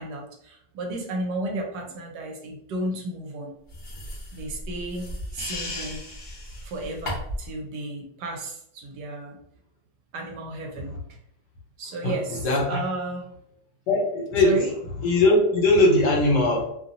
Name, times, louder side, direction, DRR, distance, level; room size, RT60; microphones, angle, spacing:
voice 1, 0.0-3.5 4.3-5.1 5.3-6.0 6.6-9.4 10.1-10.9 11.8-13.3 14.4-14.7, right 2 dB, 75° right, 1 dB, 1.1 m, -33 dB
sound 1, 3.7-7.5, left 1 dB, 40° left, 0.8 m, -35 dB
voice 2, 12.0-12.8 13.9-14.6 15.0-16.7, left 2 dB, 70° left, -1 dB, 1.4 m, -20 dB
2.9 x 2.5 x 2.6 m, 0.73 s
omnidirectional pair, 1.9 m